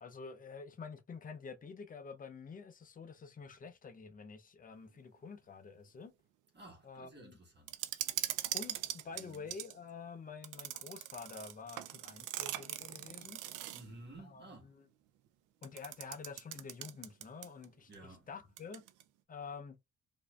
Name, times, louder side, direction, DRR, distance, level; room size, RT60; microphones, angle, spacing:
voice 1, 0.0-6.1 6.8-7.4 8.5-13.4 14.2-14.8 15.6-18.8 19.3-19.8, left 5 dB, 30° left, 0.5 m, -48 dB
voice 2, 6.5-7.8 9.1-9.5 13.7-14.7 17.9-18.3, right 2 dB, 35° right, 1.4 m, -53 dB
sound 1, 7.7-9.7 10.4-13.9 15.6-17.7 17.9-18.0 18.6-19.0, right 13 dB, 85° right, 0.5 m, -41 dB
4.6 x 2.6 x 2.2 m
cardioid pair, 90°, 30 cm